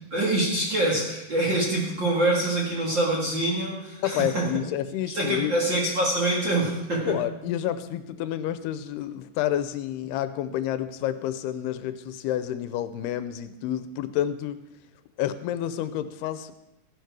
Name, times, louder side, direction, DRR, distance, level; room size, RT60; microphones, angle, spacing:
voice 1, 0.1-4.5 5.1-7.2, right 1 dB, 40° right, -3 dB, 1.9 m, -25 dB
voice 2, 4.0-5.5 7.1-14.6 15.2-16.5, left 11 dB, 85° left, 12 dB, 2.6 m, -29 dB
14.5 x 11.5 x 4.7 m, 0.87 s
omnidirectional pair, 4.6 m